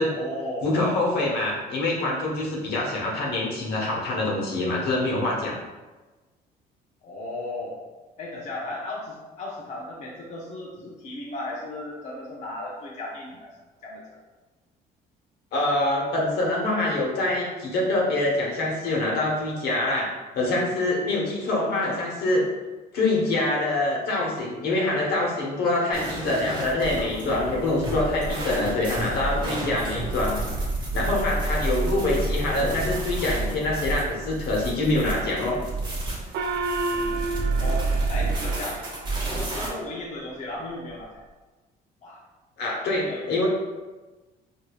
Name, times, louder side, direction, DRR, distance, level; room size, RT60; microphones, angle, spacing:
voice 1, 0.0-0.7 7.0-7.8 8.2-13.6 13.8-14.2 37.6-38.9 39.3-41.2 42.0-42.2 43.0-43.5, left 1 dB, 45° left, -4 dB, 0.6 m, -35 dB
voice 2, 0.6-5.6 15.5-22.5 22.9-30.4 30.9-35.6 42.6-43.5, left 2 dB, 75° left, -3 dB, 1.1 m, -25 dB
sound 1, 25.9-39.7, right 2 dB, 25° right, 1.1 m, -29 dB
Gong, 36.3-39.3, right 3 dB, 80° right, 0.4 m, -31 dB
4.7 x 2.7 x 2.3 m, 1.2 s
cardioid pair, 110°, 17 cm